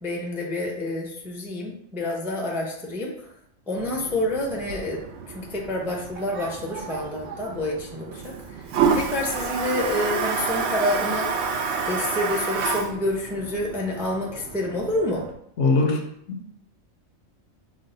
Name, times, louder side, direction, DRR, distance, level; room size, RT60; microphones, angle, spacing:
voice 1, 0.0-3.1 3.7-5.0 5.3-8.3 9.0-11.3 11.9-15.3, left 1 dB, 5° right, -2 dB, 0.5 m, -28 dB
Toilet flush, 3.8-15.3, right 5 dB, 65° right, 0.8 m, -29 dB
voice 2, 15.6-16.6, left 3 dB, 65° left, 3 dB, 0.9 m, -23 dB
6.1 x 2.1 x 3.9 m, 0.71 s
omnidirectional pair, 1.4 m